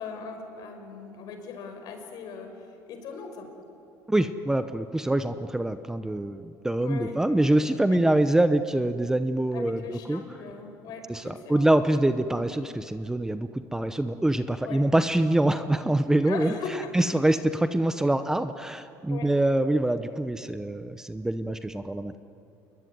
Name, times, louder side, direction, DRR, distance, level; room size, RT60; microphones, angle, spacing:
voice 1, 0.0-3.5 6.8-7.2 7.8-8.0 9.5-11.7 12.3-12.4 14.6-14.8 16.2-16.9 19.1-19.3, left 5 dB, 55° left, 5 dB, 5.7 m, -39 dB
voice 2, 4.1-10.2 11.1-16.5 16.9-22.1, right 1 dB, 5° right, 10 dB, 0.8 m, -25 dB
28.5 x 22.0 x 9.6 m, 2.7 s
cardioid pair, 135°, 8 cm